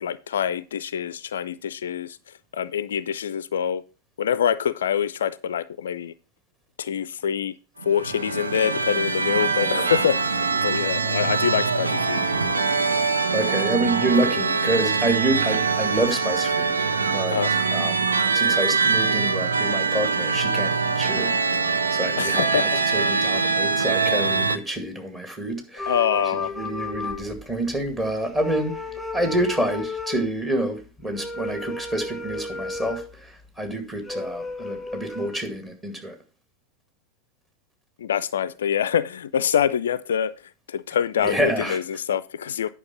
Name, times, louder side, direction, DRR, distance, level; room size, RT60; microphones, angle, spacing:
voice 1, 0.0-2.2 2.5-3.8 4.2-6.1 6.8-7.5 7.8-12.2 17.3-17.5 22.2-22.8 25.9-26.5 38.0-40.3 40.7-42.7, left 8 dB, 65° left, 0.4 m, -25 dB
sound 1, 7.8-24.6, right 4 dB, 75° right, 0.7 m, -23 dB
voice 2, 9.6-9.9 13.3-17.4 17.7-21.3 21.9-25.9 26.5-36.2 41.2-41.8, right 1 dB, 15° right, 2.2 m, -28 dB
sound 2, 25.8-27.9 28.2-30.3 31.1-33.1 34.1-35.4, left 3 dB, 5° left, 1.9 m, -33 dB
9.6 x 5.6 x 5.6 m
figure-of-eight pair, 90°, 0 cm